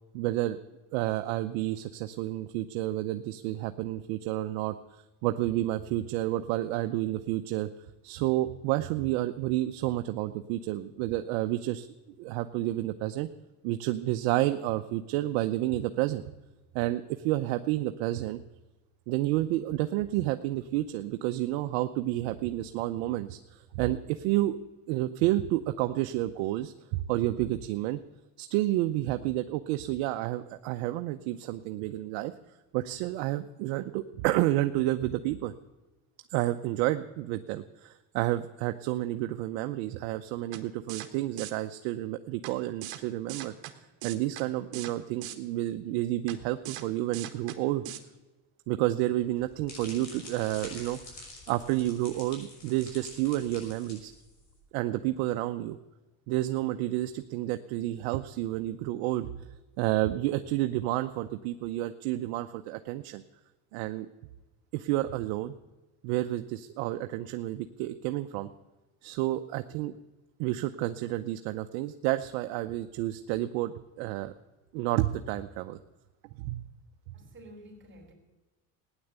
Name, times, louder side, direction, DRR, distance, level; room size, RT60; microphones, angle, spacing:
voice 1, 0.1-0.6 0.9-7.7 8.0-11.9 12.2-13.3 13.6-16.2 16.7-18.4 19.1-24.6 24.9-28.0 28.4-32.3 32.7-35.5 36.3-43.5 44.0-47.8 48.7-51.0 51.5-54.1 54.7-55.8 56.3-63.2 63.7-64.1 64.7-65.5 66.0-68.5 69.0-69.9 70.4-74.3 74.7-75.8 76.4-76.7 77.1-77.2, right 15 dB, 85° right, 8 dB, 0.7 m, -30 dB
sound 1, 40.5-40.6 40.9-41.1 41.4-41.5 42.4-42.5 42.8-43.0 43.3-43.7 44.0-44.4 44.7-44.9 45.2-45.4 46.3-46.4 46.6-46.8 47.1-47.6 47.8-48.0, right 13 dB, 70° right, 1.5 m, -39 dB
sound 2, 49.2-54.6, left 2 dB, 45° left, 6.0 m, -47 dB
voice 2, 77.1-78.1, right 1 dB, 30° right, 1 dB, 3.8 m, -50 dB
16.0 x 9.9 x 8.1 m, 1.1 s
cardioid pair, 110°, 38 cm